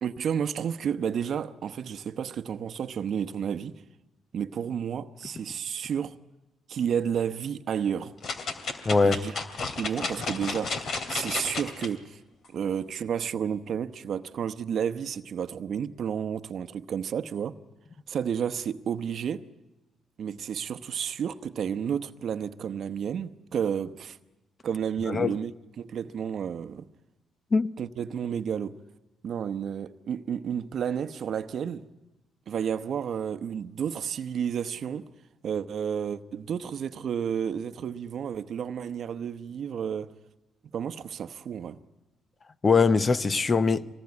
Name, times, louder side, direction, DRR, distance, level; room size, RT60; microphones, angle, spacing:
voice 1, 0.0-3.8 4.3-6.2 6.7-8.1 9.0-9.3 9.8-12.2 12.5-17.6 18.1-19.5 20.2-24.2 24.6-25.5 25.8-26.9 27.8-28.8 29.2-31.9 32.5-35.0 35.4-40.1 40.7-41.8, right 8 dB, 60° right, 0.9 m, -31 dB
sound 1, 8.2-11.9 12.4-12.5, left 4 dB, 60° left, 2.6 m, -33 dB
voice 2, 8.8-9.2 25.1-25.4 27.5-27.7 42.6-43.9, left 4 dB, 35° left, 0.8 m, -22 dB
25.0 x 19.5 x 9.7 m
cardioid pair, 90°, 0 cm